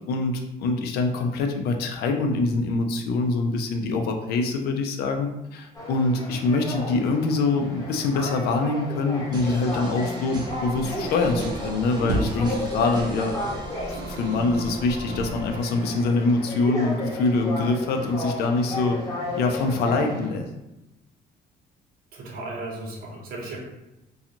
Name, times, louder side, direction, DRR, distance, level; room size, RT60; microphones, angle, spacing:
voice 1, 0.1-13.4 13.9-19.0 19.4-20.4, left 3 dB, 70° left, 4 dB, 0.5 m, -24 dB
sound 1, 5.7-20.3, left 2 dB, 20° left, 0.8 m, -34 dB
sound 2, 9.3-16.3, right 2 dB, 25° right, 0.5 m, -37 dB
Squeak, 10.5-15.7, right 1 dB, 85° right, 0.5 m, -35 dB
voice 2, 22.1-23.6, right 2 dB, 60° right, -1 dB, 0.8 m, -35 dB
2.5 x 2.3 x 2.9 m, 0.94 s
cardioid pair, 110°, 17 cm